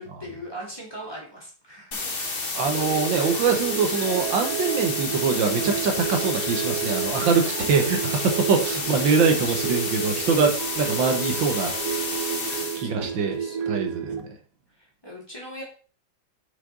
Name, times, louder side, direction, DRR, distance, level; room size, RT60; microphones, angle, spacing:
voice 1, 0.0-2.1 8.5-8.6 9.0-9.6 12.7-13.9 14.8-15.6, equal, 15° left, -3 dB, 2.4 m, -40 dB
sound 1, 1.9-12.8, left 3 dB, 35° left, 1.2 m, -30 dB
voice 2, 2.5-11.7 12.8-13.4 13.7-14.3, right 5 dB, 80° right, 4 dB, 1.9 m, -23 dB
sound 2, 2.6-14.2, right 10 dB, 60° right, 1.0 m, -31 dB
6.4 x 5.8 x 3.9 m, 0.39 s
omnidirectional pair, 2.0 m